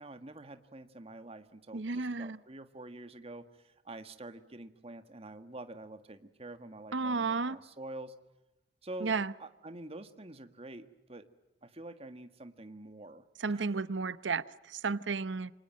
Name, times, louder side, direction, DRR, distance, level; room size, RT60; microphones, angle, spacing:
voice 1, 0.0-8.1 8.8-11.3 11.6-13.7, right 2 dB, 35° right, 9 dB, 1.7 m, -47 dB
voice 2, 1.7-2.4 6.9-7.6 9.0-9.3 13.4-15.5, right 4 dB, 90° right, 16 dB, 0.8 m, -33 dB
27.5 x 25.5 x 7.5 m, 1.1 s
head